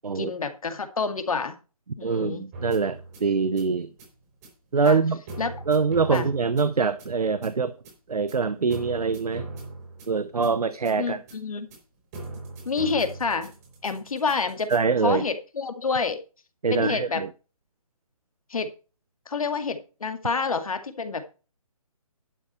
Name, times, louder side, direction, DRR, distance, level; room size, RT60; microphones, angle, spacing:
voice 1, 0.1-1.5 2.0-2.4 4.8-5.0 5.4-5.5 6.1-6.3 11.0-11.7 12.7-13.5 13.8-14.7 15.0-16.2 16.7-17.2 18.5-18.7 19.3-21.2, left 4 dB, 70° left, 2.1 m, -28 dB
voice 2, 2.0-3.9 4.7-5.2 5.7-7.7 8.1-9.5 10.1-11.2 14.7-15.2 16.6-17.3, right 5 dB, 85° right, 0.9 m, -24 dB
sound 1, 2.5-14.8, right 2 dB, 25° right, 3.9 m, -41 dB
11.5 x 7.3 x 4.4 m
hypercardioid pair, 160°, 19 cm